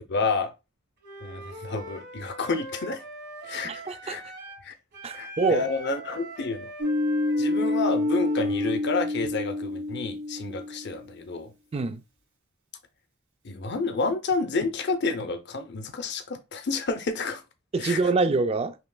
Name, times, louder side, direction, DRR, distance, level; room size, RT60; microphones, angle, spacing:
voice 1, 0.1-0.5 1.2-3.0 3.4-4.2 4.6-4.7 5.1-6.7 7.4-11.5 13.4-17.4 17.8-18.0, left 3 dB, 55° left, 0.6 m, -30 dB
Wind instrument woodwind instrument, 1.0-4.6 4.9-8.8, right 1 dB, 50° right, 1.5 m, -41 dB
voice 2, 3.6-4.2 5.0-5.6 11.7-12.0 17.7-18.8, right 3 dB, 30° right, 0.3 m, -25 dB
sound 1, 6.8-11.1, left 2 dB, 70° right, 1.9 m, -27 dB
5.6 x 3.1 x 2.2 m
head